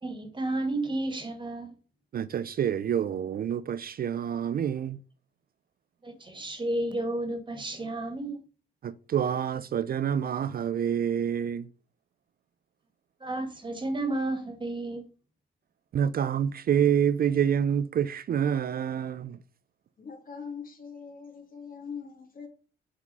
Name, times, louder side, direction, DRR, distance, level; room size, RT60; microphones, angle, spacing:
voice 1, 0.0-1.7 6.0-8.4 13.2-15.0, right 2 dB, 25° right, 1.9 m, -32 dB
voice 2, 2.1-5.0 8.8-11.7 15.9-19.4, right 8 dB, 50° right, 0.5 m, -27 dB
voice 3, 20.0-22.5, left 6 dB, 45° left, 2.8 m, -42 dB
7.2 x 4.3 x 5.5 m
cardioid pair, 90°, 20 cm